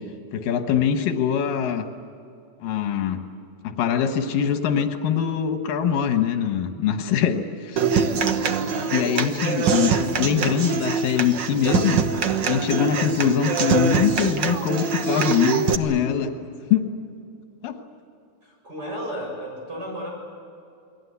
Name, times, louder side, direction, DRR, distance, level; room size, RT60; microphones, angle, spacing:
voice 1, 0.3-1.8 2.6-3.2 3.6-7.9 8.9-12.0 12.5-16.3 16.7-16.8 17.6-17.8, left 8 dB, 85° left, 6 dB, 3.1 m, -23 dB
Human voice / Acoustic guitar, 7.8-15.7, right 6 dB, 65° right, 1.1 m, -24 dB
voice 2, 8.8-9.3 18.4-20.1, equal, 30° right, -1 dB, 8.2 m, -33 dB
29.0 x 21.5 x 8.3 m, 2.5 s
omnidirectional pair, 3.8 m